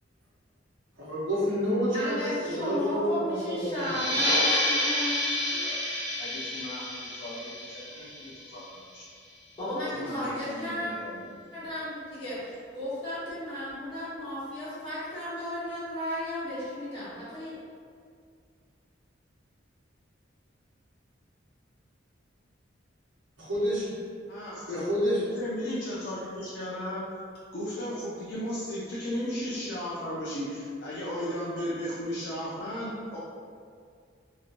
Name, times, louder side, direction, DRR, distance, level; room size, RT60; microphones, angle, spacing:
voice 1, 1.0-3.9 23.4-23.9 24.7-25.2, equal, 80° right, -9 dB, 0.9 m, -29 dB
voice 2, 1.9-5.3 9.5-10.9 11.5-17.5, left 1 dB, 25° left, -12 dB, 1.3 m, -34 dB
sound 1, 3.7-9.0, left 1 dB, 15° right, 1.1 m, -29 dB
voice 3, 6.2-9.0 9.9-11.4 24.3-27.0 27.5-33.2, equal, 60° left, -7 dB, 0.5 m, -36 dB
2.9 x 2.8 x 2.5 m, 2.2 s
head